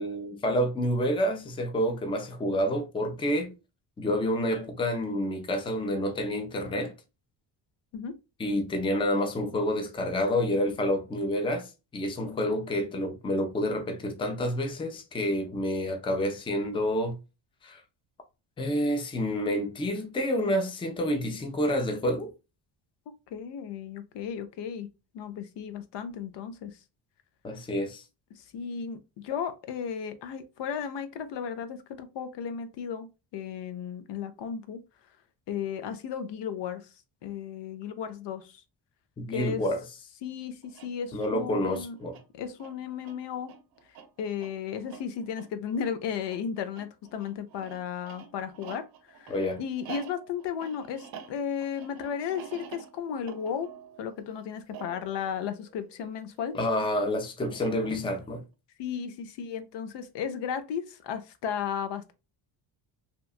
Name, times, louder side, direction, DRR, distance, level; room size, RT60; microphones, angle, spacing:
voice 1, 0.0-3.5 4.0-6.9 8.4-17.2 17.6-17.8 18.6-22.3 27.4-28.0 39.2-39.8 41.1-42.2 49.3-49.6 56.5-58.4, equal, 10° left, 0.4 m, -28 dB
voice 2, 23.3-26.8 28.4-34.8 35.5-36.9 37.2-38.6 39.3-39.6 40.2-42.0 42.3-43.5 44.2-53.7 54.0-56.5 58.8-62.1, left 7 dB, 70° left, 0.6 m, -35 dB
sound 1, 40.6-56.4 57.4-58.3, right 7 dB, 55° right, 0.6 m, -48 dB
2.9 x 2.2 x 2.4 m
cardioid pair, 115°, 44 cm